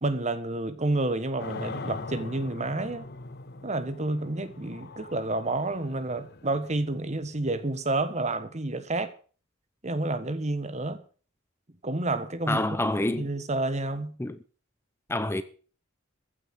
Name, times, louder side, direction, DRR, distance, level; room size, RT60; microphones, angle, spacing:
voice 1, 0.0-3.1 3.6-9.1 9.8-11.0 11.8-12.7 13.2-14.1, right 2 dB, 35° right, 1.4 m, -29 dB
sound 1, 1.4-8.3, left 3 dB, 50° left, 1.1 m, -42 dB
voice 2, 12.5-13.3 14.2-14.4 15.1-15.4, left 1 dB, 10° left, 0.7 m, -27 dB
15.5 x 9.2 x 6.2 m
head